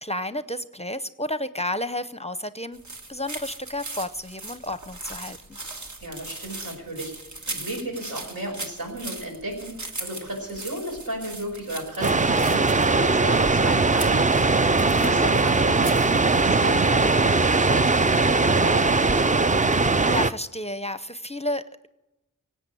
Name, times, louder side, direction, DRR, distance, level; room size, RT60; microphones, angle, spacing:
voice 1, 0.0-5.6 19.6-21.9, left 1 dB, 20° left, 14 dB, 0.6 m, -32 dB
sound 1, 2.7-16.4, right 2 dB, 55° right, 1.6 m, -39 dB
voice 2, 6.0-7.1 7.5-16.0 16.4-19.2, right 1 dB, 80° right, 0 dB, 5.4 m, -34 dB
sound 2, 12.0-20.3, right 3 dB, 25° right, 0.5 m, -20 dB
18.0 x 8.2 x 9.0 m, 0.97 s
wide cardioid pair, 45°, 34 cm